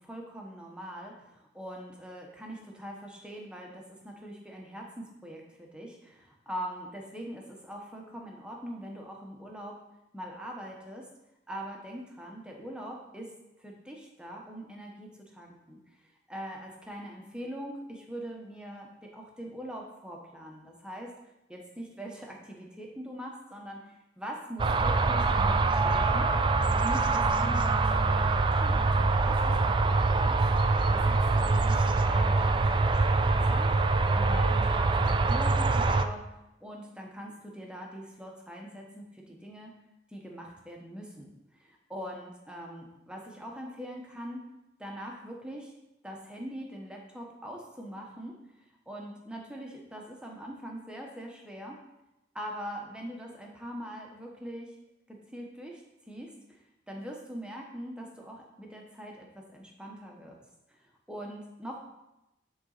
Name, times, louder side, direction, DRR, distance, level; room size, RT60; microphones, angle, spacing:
voice 1, 0.0-9.8 10.1-11.0 11.5-13.3 13.6-21.1 21.5-26.3 26.7-30.4 30.9-36.2 36.6-39.7 40.1-44.4 44.8-45.7 46.0-48.3 48.9-51.8 52.3-54.8 55.1-55.8 56.1-56.6 56.9-60.4 60.7-61.8, equal, 5° right, -1 dB, 1.0 m, -42 dB
sound 1, 24.6-36.1, right 3 dB, 25° right, 0.3 m, -24 dB
9.4 x 3.9 x 4.0 m, 0.92 s
head